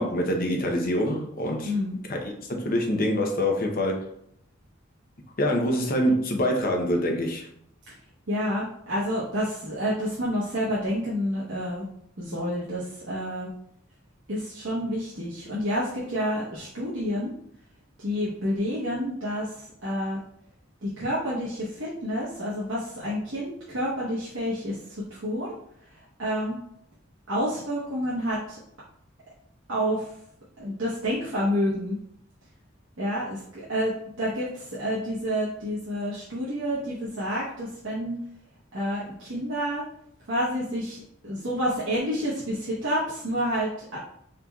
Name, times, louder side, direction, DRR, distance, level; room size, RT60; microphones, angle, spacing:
voice 1, 0.0-1.7 2.1-4.0 5.4-7.5, equal, 45° left, 0.7 m, -25 dB
voice 2, 1.6-2.0 8.3-11.9 12.2-13.5 14.3-17.3 18.0-20.2 20.8-24.8 25.1-25.6 26.2-26.6 27.3-28.6 29.7-30.1 30.6-32.0 33.0-33.9 34.2-38.2 38.7-39.8 40.3-44.0, equal, 70° right, 1.0 m, -29 dB
4.3 x 3.8 x 2.3 m
head